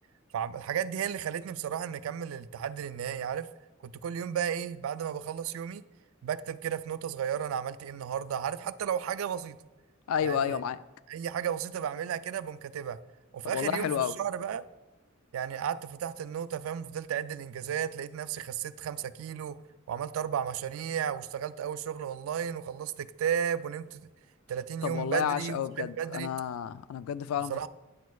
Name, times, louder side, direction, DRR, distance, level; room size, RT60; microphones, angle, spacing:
voice 1, 0.3-3.5 3.8-5.8 6.2-9.6 10.2-10.6 11.1-13.0 13.3-14.7 15.3-19.6 19.9-24.0 24.5-26.3 27.4-27.7, right 8 dB, 75° right, 16 dB, 0.3 m, -34 dB
voice 2, 10.1-10.8 13.5-14.1 24.8-27.7, left 8 dB, 80° left, 15 dB, 0.3 m, -31 dB
9.1 x 6.2 x 2.3 m, 1.0 s
head